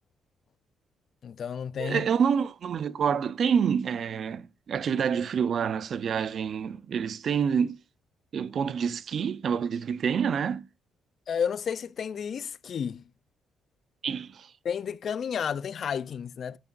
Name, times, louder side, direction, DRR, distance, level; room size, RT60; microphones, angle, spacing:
voice 1, 1.2-2.1 11.3-13.0 14.6-16.6, left 7 dB, 55° left, 0.5 m, -31 dB
voice 2, 1.8-7.8 8.3-10.7 14.0-14.5, right 7 dB, 55° right, 0.7 m, -27 dB
11.0 x 9.2 x 2.6 m
cardioid pair, 90°, 0 cm